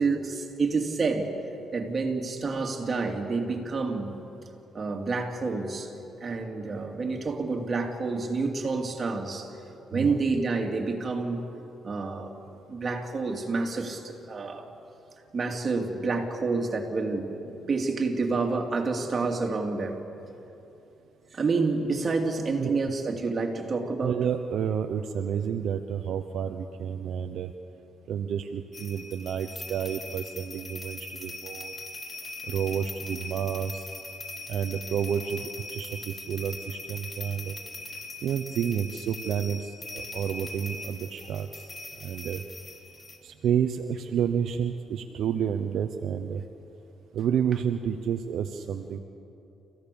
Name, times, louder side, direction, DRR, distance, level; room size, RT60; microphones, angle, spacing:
voice 1, 0.0-1.3 1.7-4.1 4.7-5.9 6.2-9.5 9.9-11.4 11.8-12.3 12.7-14.7 15.3-20.0 21.3-24.2, right 4 dB, 35° right, 2 dB, 3.0 m, -28 dB
voice 2, 22.6-22.9 24.0-27.5 28.1-31.7 32.5-33.8 34.5-35.4 35.7-37.6 38.2-41.5 42.0-42.4 43.2-46.4 47.1-49.0, right 8 dB, 70° right, 7 dB, 0.9 m, -30 dB
sound 1, 28.7-43.2, left 2 dB, 30° left, 3.0 m, -41 dB
30.0 x 15.5 x 7.1 m, 2.9 s
cardioid pair, 90°, 0 cm